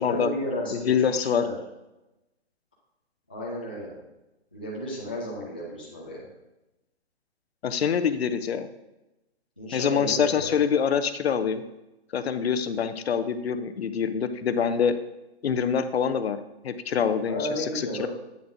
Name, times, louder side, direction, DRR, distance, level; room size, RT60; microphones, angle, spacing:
voice 1, 0.0-1.6 3.3-3.9 4.5-6.3 9.6-10.6 17.2-18.1, equal, 10° left, -7 dB, 0.3 m, -33 dB
voice 2, 0.7-1.4 7.6-8.7 9.7-11.6 12.1-15.0 15.4-16.4 16.6-18.1, left 7 dB, 65° left, 12 dB, 0.7 m, -25 dB
8.7 x 6.8 x 2.6 m, 0.98 s
hypercardioid pair, 145°, 33 cm